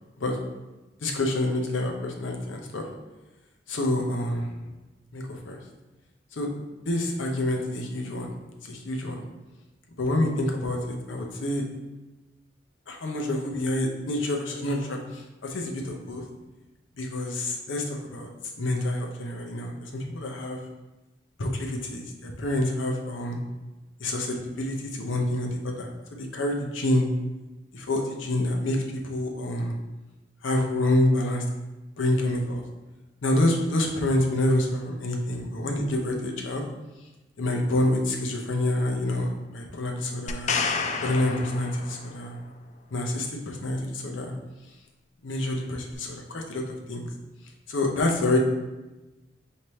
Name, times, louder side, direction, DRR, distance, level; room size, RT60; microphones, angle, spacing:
voice 1, 1.0-2.9 3.7-4.5 5.1-5.6 6.3-6.5 6.8-8.3 8.7-9.2 10.0-11.6 12.9-16.2 17.0-18.3 18.6-20.6 21.4-23.4 24.0-27.1 27.7-28.8 29.0-29.7 30.4-31.4 32.0-32.6 33.2-36.7 37.4-40.5 41.0-42.4 42.9-44.3 45.2-46.6 46.9-47.1 47.7-48.4, left 1 dB, 85° left, 1 dB, 0.7 m, -27 dB
sound 1, 40.3-42.3 45.9-46.0, left 5 dB, 40° left, 0.3 m, -30 dB
5.5 x 2.8 x 3.1 m, 1.1 s
head